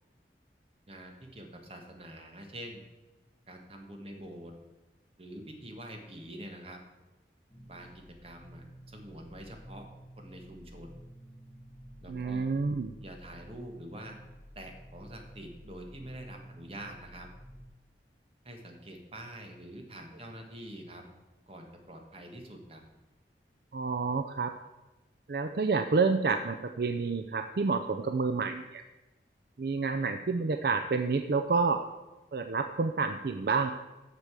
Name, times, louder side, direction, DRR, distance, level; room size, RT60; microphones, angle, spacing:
voice 1, 0.9-2.8 3.5-4.5 5.2-6.8 7.7-9.9 10.2-11.0 12.0-12.5 13.0-14.2 14.5-17.3 18.4-21.0 21.5-22.8, right 1 dB, 35° right, 3 dB, 1.5 m, -46 dB
sound 1, 7.5-17.7, equal, 15° left, 2.2 m, -51 dB
voice 2, 12.1-12.9 23.7-24.5 25.3-28.8 29.6-31.8 32.3-33.7, right 4 dB, 60° right, 7 dB, 0.5 m, -29 dB
8.2 x 6.8 x 7.4 m, 1.1 s
head